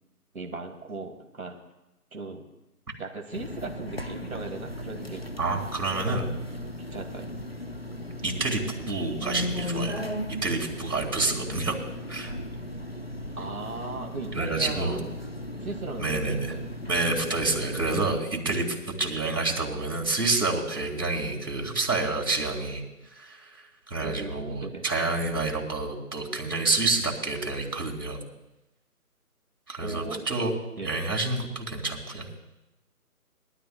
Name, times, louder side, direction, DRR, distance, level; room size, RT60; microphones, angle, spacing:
voice 1, 0.3-1.6 2.1-2.5 3.0-5.2 6.0-6.3 6.9-7.3 13.4-15.1 15.6-16.6 24.0-24.8 29.8-30.4 30.8-30.9, right 3 dB, 60° right, 3 dB, 2.3 m, -37 dB
sound 1, 3.3-18.1, left 1 dB, 40° left, 0.5 m, -36 dB
voice 2, 5.4-6.3 7.8-7.9 8.2-8.6 8.9-10.0 10.3-11.8 12.1-12.3 14.3-15.0 16.0-16.5 16.9-22.8 23.1-23.5 23.9-28.2 29.7-30.5 30.8-32.3, right 3 dB, 85° right, 0 dB, 3.5 m, -28 dB
22.5 x 12.5 x 2.3 m, 0.95 s
figure-of-eight pair, 180°, 46 cm